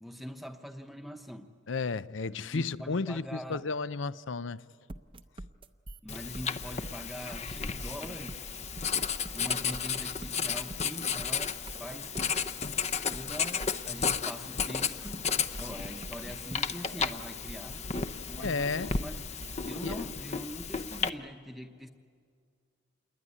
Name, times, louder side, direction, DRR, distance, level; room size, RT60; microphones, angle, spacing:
voice 1, 0.0-1.5 2.3-3.7 6.0-8.5 9.3-12.1 13.1-15.3 15.6-17.8 18.3-19.2 19.5-21.9, equal, ahead, 0.9 m, -43 dB
voice 2, 1.7-4.6 18.4-18.9 19.8-20.0, left 4 dB, 75° left, 0.6 m, -33 dB
sound 1, 4.9-20.2, right 1 dB, 25° right, 0.7 m, -46 dB
Writing, 6.1-21.1, left 6 dB, 35° left, 0.7 m, -33 dB
27.5 x 21.5 x 9.9 m
head